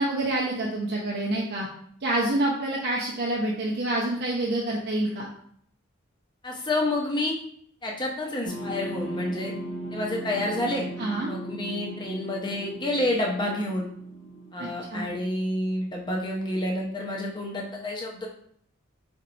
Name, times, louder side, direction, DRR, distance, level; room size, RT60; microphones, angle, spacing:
voice 1, 0.0-1.7 2.0-5.3 11.0-11.3 14.6-15.1, right 1 dB, 50° right, -4 dB, 0.7 m, -27 dB
voice 2, 6.4-7.3 7.8-9.5 9.9-10.9 11.3-13.9 14.5-18.3, left 1 dB, 20° left, -1 dB, 0.8 m, -29 dB
sound 1, 8.4-15.9, right 1 dB, 85° left, 1.4 m, -38 dB
4.4 x 4.3 x 2.6 m, 0.66 s
head